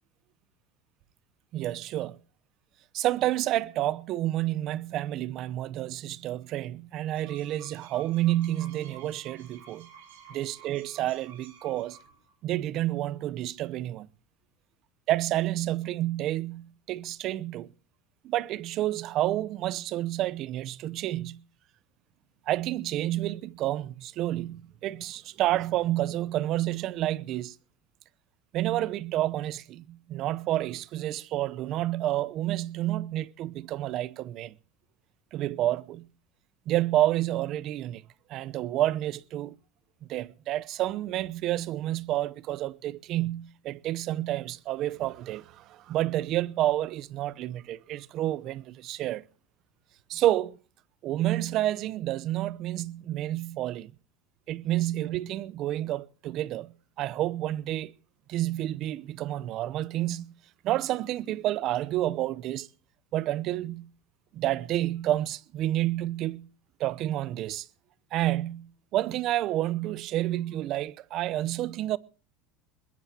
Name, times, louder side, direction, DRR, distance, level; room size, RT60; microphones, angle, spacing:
voice 1, 1.5-2.2 2.9-9.9 10.3-12.0 12.4-14.1 15.1-17.7 18.2-21.4 22.5-27.5 28.5-34.5 35.3-36.1 36.7-38.0 38.3-39.6 40.0-49.2 50.1-50.6 51.0-53.9 54.5-57.9 58.3-60.3 60.6-62.7 63.1-63.9 64.3-66.5 66.8-67.7 68.1-72.0, right 14 dB, 55° right, 0.8 m, -29 dB
sound 1, 6.9-12.3, right 6 dB, 85° right, 7.1 m, -52 dB
21.5 x 21.0 x 2.9 m
supercardioid pair, 100°, 0 cm